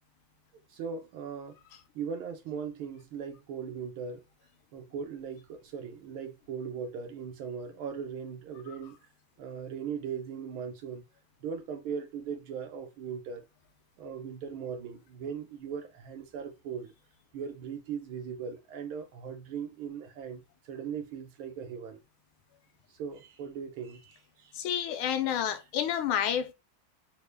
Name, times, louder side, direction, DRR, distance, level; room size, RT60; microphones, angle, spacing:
voice 1, 0.7-1.6 1.9-4.2 4.7-9.0 9.4-11.0 11.4-13.5 14.0-16.9 17.3-22.0 22.9-24.6 25.5-25.6, right 7 dB, 90° right, 1.6 m, -39 dB
voice 2, 24.5-26.5, left 9 dB, 85° left, 1.5 m, -29 dB
3.9 x 2.2 x 3.2 m
omnidirectional pair, 2.2 m